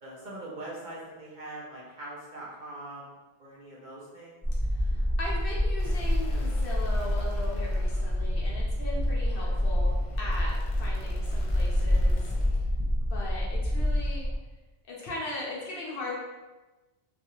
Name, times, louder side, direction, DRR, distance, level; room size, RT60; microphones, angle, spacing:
voice 1, 0.0-4.4 9.4-9.6, right 1 dB, 55° right, -6 dB, 0.6 m, -42 dB
sound 1, 4.4-14.4, left 1 dB, 5° left, 0.3 m, -27 dB
voice 2, 4.8-12.3 13.1-14.3 14.9-16.2, left 2 dB, 60° left, -4 dB, 0.7 m, -38 dB
sound 2, 5.8-12.6, left 2 dB, 90° left, 0.9 m, -51 dB
2.4 x 2.4 x 2.8 m, 1.1 s
omnidirectional pair, 1.2 m